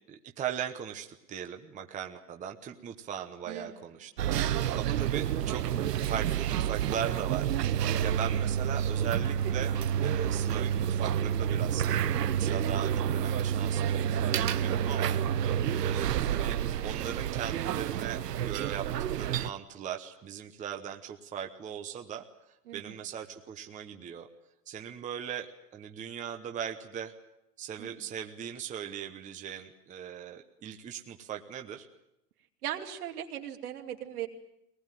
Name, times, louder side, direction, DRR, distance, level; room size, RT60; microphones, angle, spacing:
voice 1, 0.1-4.3 4.7-5.6 6.1-15.4 15.8-18.9 19.1-24.3 24.7-27.1 27.6-31.9, right 8 dB, 15° right, 5 dB, 1.0 m, -39 dB
voice 2, 3.5-3.8 4.3-4.5 15.5-15.8 22.7-22.9 27.8-28.1 32.6-34.3, right 11 dB, 65° right, 4 dB, 2.7 m, -39 dB
sound 1, 4.2-19.5, right 9 dB, 85° right, 1.0 m, -29 dB
21.5 x 19.5 x 9.2 m, 0.83 s
hypercardioid pair, 135°, 47 cm